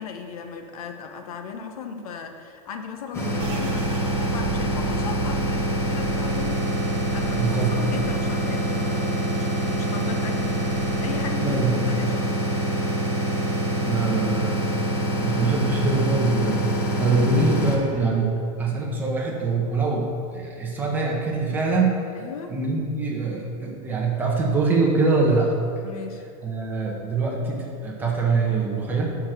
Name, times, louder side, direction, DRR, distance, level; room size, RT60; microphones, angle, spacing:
voice 1, 0.0-11.6 11.9-12.4 22.2-22.5 25.8-26.2, left 6 dB, 75° left, 5 dB, 1.1 m, -37 dB
sound 1, 3.1-17.8, right 1 dB, 15° left, 1.3 m, -25 dB
sound 2, 3.4-12.8 13.1-14.3 14.6-15.1 15.6-16.2, right 3 dB, 60° right, 1.1 m, -38 dB
voice 2, 7.3-7.7 11.4-11.8 13.8-14.7 15.2-16.6 17.0-18.3 18.6-22.0 22.5-25.5 26.4-29.2, right 3 dB, 10° right, -2 dB, 1.0 m, -23 dB
11.0 x 4.5 x 6.5 m, 2.4 s
supercardioid pair, 175°, 19 cm